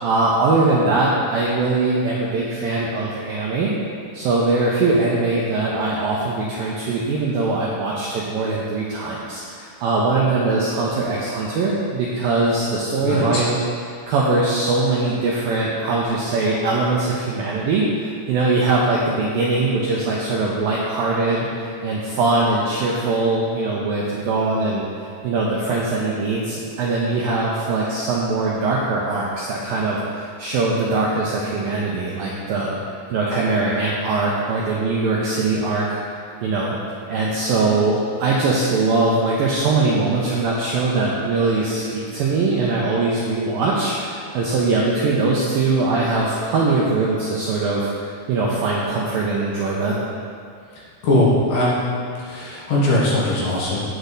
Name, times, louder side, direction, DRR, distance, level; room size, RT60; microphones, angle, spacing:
voice 1, 0.0-3.7 4.1-13.6 14.1-24.8 25.2-32.8 33.1-36.0 36.4-36.7 37.1-50.0, right 3 dB, 80° right, -4 dB, 2.1 m, -21 dB
voice 2, 51.0-51.8 52.2-53.8, left 1 dB, 65° left, -6 dB, 3.0 m, -19 dB
9.3 x 8.3 x 4.0 m, 2.3 s
omnidirectional pair, 5.2 m